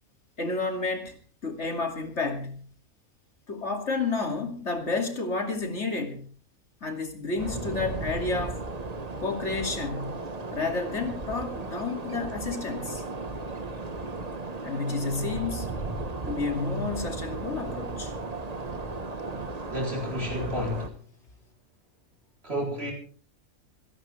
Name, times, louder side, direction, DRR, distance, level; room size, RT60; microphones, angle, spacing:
voice 1, 0.4-2.6 3.5-6.2 6.8-8.6 9.2-10.2 10.5-13.0 14.6-15.7 16.3-18.1, left 3 dB, 55° left, 2.9 m, -30 dB
sound 1, 7.4-20.9, right 3 dB, 30° right, 1.3 m, -35 dB
voice 2, 19.7-21.0 22.4-22.9, left 1 dB, 45° right, 4.2 m, -31 dB
26.5 x 11.0 x 3.4 m
omnidirectional pair, 1.4 m